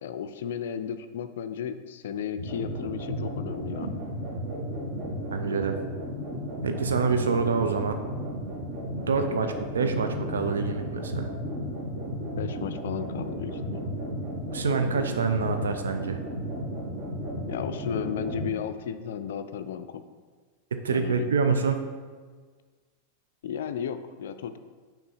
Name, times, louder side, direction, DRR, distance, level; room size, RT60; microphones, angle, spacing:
voice 1, 0.0-3.9 9.2-9.4 12.4-13.8 17.5-20.0 20.9-21.3 23.4-24.6, left 8 dB, 60° left, 10 dB, 0.3 m, -34 dB
sound 1, 2.3-18.5, equal, 40° right, 1.8 m, -34 dB
voice 2, 5.3-5.8 6.6-8.0 8.9-11.3 14.5-16.2 20.7-21.8, right 5 dB, 70° right, 6 dB, 0.4 m, -26 dB
6.0 x 3.4 x 5.5 m, 1.5 s
figure-of-eight pair, 90°, 0 cm